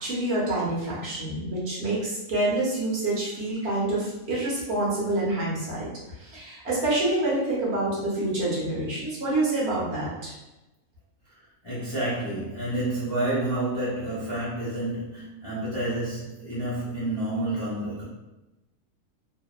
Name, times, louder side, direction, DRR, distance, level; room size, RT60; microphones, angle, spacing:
voice 1, 0.0-5.9 6.2-10.3, right 2 dB, 50° right, -6 dB, 0.9 m, -27 dB
voice 2, 11.6-18.0, right 1 dB, 35° left, -9 dB, 0.4 m, -29 dB
2.7 x 2.1 x 2.3 m, 0.99 s
omnidirectional pair, 1.6 m